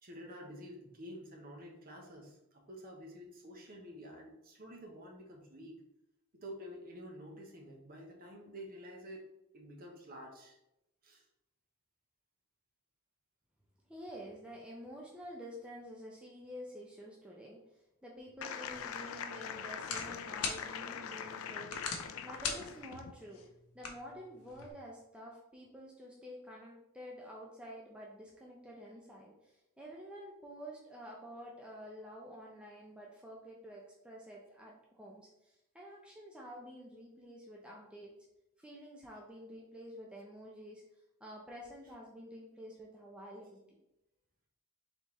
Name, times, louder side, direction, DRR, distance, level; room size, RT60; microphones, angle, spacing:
voice 1, 0.0-5.8 6.3-9.2 9.5-10.6 11.0-11.2, equal, 40° right, 1 dB, 0.8 m, -49 dB
voice 2, 13.9-23.4 23.7-38.1 38.6-40.8 41.2-43.8, equal, 5° right, -3 dB, 0.4 m, -49 dB
sound 1, 18.4-23.1, left 7 dB, 65° left, 0.3 m, -43 dB
sound 2, 18.6-24.7, left 5 dB, 80° left, 0.7 m, -44 dB
4.1 x 3.5 x 3.0 m, 0.87 s
head